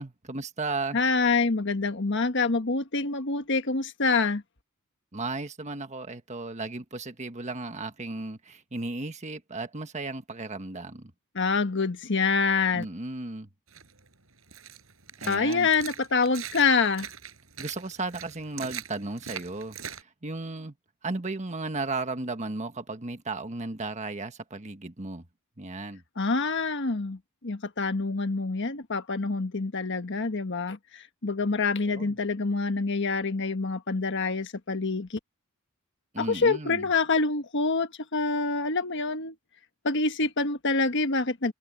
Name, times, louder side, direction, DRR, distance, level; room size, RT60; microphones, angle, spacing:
voice 1, 0.0-1.0 5.1-11.1 12.7-13.5 15.2-15.7 17.6-20.7 21.0-25.2 25.6-26.0 31.8-32.2 36.1-36.9, right 3 dB, 35° right, 1.5 m, -35 dB
voice 2, 0.9-4.4 11.3-12.9 15.3-17.1 26.2-35.2 36.2-39.3 39.8-41.5, left 4 dB, 60° left, 1.4 m, -26 dB
sound 1, 13.7-20.0, right 8 dB, 75° right, 5.4 m, -42 dB
head